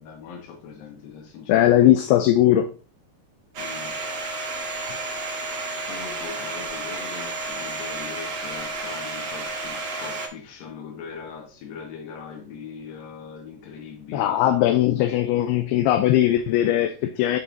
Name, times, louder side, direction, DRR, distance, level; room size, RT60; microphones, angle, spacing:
voice 1, 0.0-1.8 3.5-4.0 5.9-14.4, left 6 dB, 65° left, 2.9 m, -40 dB
voice 2, 1.5-2.7 14.1-17.4, left 12 dB, 80° left, 2.5 m, -19 dB
Domestic sounds home sounds, 3.5-10.3, right 3 dB, 70° right, 1.6 m, -31 dB
8.2 x 5.3 x 2.6 m
omnidirectional pair, 4.8 m